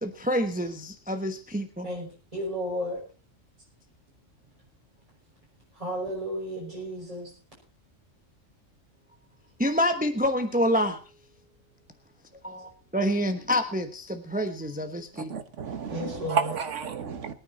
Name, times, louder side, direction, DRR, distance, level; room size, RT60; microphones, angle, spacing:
voice 1, 0.0-1.9 9.6-11.0 12.4-15.3, equal, 5° right, 1.0 m, -27 dB
voice 2, 1.8-3.0 5.7-7.3 15.9-16.6, equal, 25° right, 5.9 m, -33 dB
voice 3, 15.2-17.3, right 6 dB, 65° right, 1.5 m, -31 dB
22.0 x 9.3 x 4.2 m
omnidirectional pair, 1.4 m